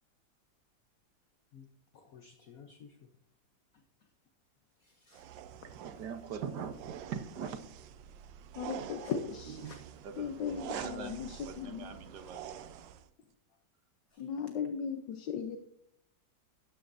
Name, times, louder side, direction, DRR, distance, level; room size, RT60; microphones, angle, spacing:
voice 1, 1.9-3.0 4.8-5.2 9.0-9.1 9.5-9.8 14.1-14.2, left 8 dB, 60° left, 6 dB, 1.1 m, -43 dB
sound 1, 5.1-13.1, right 9 dB, 80° right, 1.4 m, -47 dB
voice 2, 5.5-7.8 10.0-10.4 10.7-12.7, right 7 dB, 65° right, 8 dB, 1.5 m, -42 dB
voice 3, 8.6-9.2 10.2-11.9 14.2-15.6, left 7 dB, 75° left, 7 dB, 1.4 m, -37 dB
13.0 x 10.0 x 2.6 m, 0.70 s
omnidirectional pair, 2.0 m